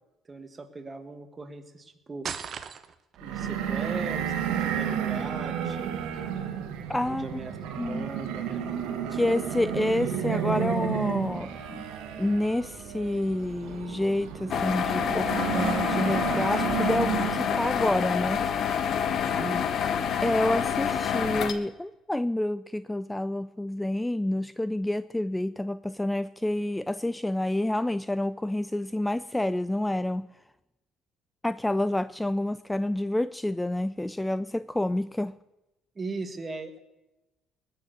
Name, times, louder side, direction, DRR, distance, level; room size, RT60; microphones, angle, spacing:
voice 1, 0.3-2.3 3.2-5.9 7.1-8.6 19.3-20.0 36.0-36.8, right 3 dB, 30° right, 9 dB, 1.7 m, -39 dB
sound 1, 2.2-3.2, right 7 dB, 50° right, 0.9 m, -36 dB
sound 2, 3.2-17.7, right 8 dB, 75° right, 1.7 m, -32 dB
voice 2, 6.9-7.4 7.8-8.1 9.1-11.9 12.2-15.3 15.5-18.4 20.2-30.3 31.4-35.3, left 1 dB, 10° left, 16 dB, 0.4 m, -28 dB
sound 3, 14.5-21.5, left 8 dB, 55° left, 1.0 m, -27 dB
20.0 x 6.8 x 6.6 m, 0.99 s
hypercardioid pair, 60°, 0 cm